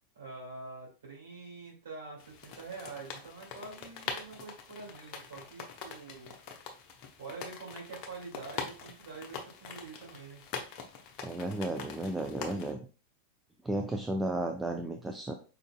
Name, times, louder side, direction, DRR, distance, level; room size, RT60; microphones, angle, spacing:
voice 1, 0.1-6.3 7.2-10.4, right 4 dB, 65° right, -3 dB, 2.0 m, -46 dB
sound 1, 2.2-12.7, left 5 dB, 40° left, 0.7 m, -44 dB
voice 2, 11.2-12.8 13.6-15.3, right 1 dB, 10° right, 4 dB, 0.4 m, -33 dB
4.7 x 3.9 x 2.2 m, 0.36 s
figure-of-eight pair, 90°, 0 cm